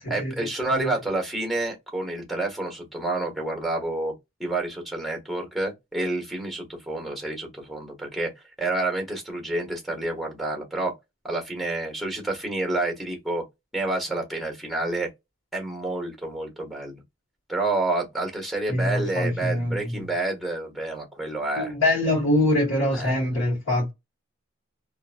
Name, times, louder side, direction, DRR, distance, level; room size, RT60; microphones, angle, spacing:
voice 1, 0.1-4.1 4.4-8.3 8.6-10.9 11.2-13.4 13.7-15.1 15.5-17.0 17.5-21.7 22.9-23.3, right 2 dB, ahead, 1.1 m, -29 dB
voice 2, 18.7-20.1 21.6-23.9, left 1 dB, 70° left, 1.4 m, -24 dB
2.8 x 2.6 x 2.4 m
head